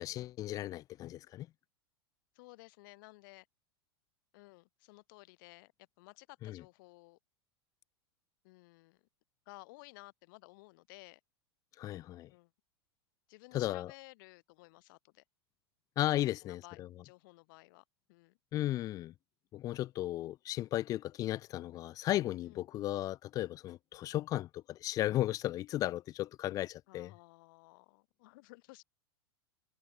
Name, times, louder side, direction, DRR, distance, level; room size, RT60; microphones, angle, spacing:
voice 1, 0.0-1.5 6.4-6.6 11.8-12.3 13.5-13.9 16.0-16.9 18.5-19.1 19.5-27.1, left 14 dB, 25° left, 0.3 m, -35 dB
voice 2, 2.3-3.5 4.3-5.7 6.0-7.2 8.4-9.1 9.4-11.2 12.3-12.5 13.3-15.2 16.2-18.4 22.5-22.7 26.9-28.8, left 24 dB, 50° left, 1.5 m, -55 dB
figure-of-eight pair, 90°, 14 cm